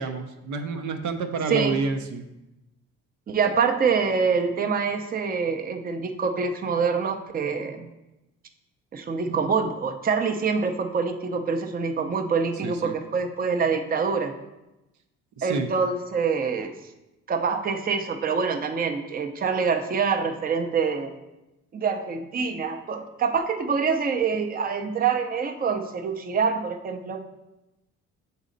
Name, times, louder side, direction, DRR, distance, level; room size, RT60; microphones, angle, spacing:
voice 1, 0.0-2.2 12.6-12.9 15.4-15.7, right 4 dB, 75° right, 6 dB, 0.6 m, -29 dB
voice 2, 3.3-7.9 8.9-14.3 15.4-16.7 17.3-21.2 21.7-27.2, right 5 dB, 30° right, 5 dB, 0.5 m, -25 dB
6.2 x 4.1 x 3.9 m, 0.97 s
cardioid pair, 90°, 30 cm